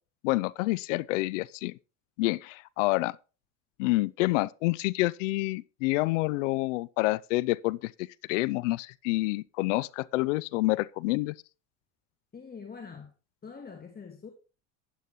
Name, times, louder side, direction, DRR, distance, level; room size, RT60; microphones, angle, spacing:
voice 1, 0.2-1.7 2.2-3.2 3.8-11.3, left 20 dB, 80° left, 0.5 m, -28 dB
voice 2, 12.3-13.1 13.4-14.3, left 5 dB, 25° left, 1.8 m, -44 dB
12.5 x 10.0 x 3.0 m
supercardioid pair, 90°, 37 cm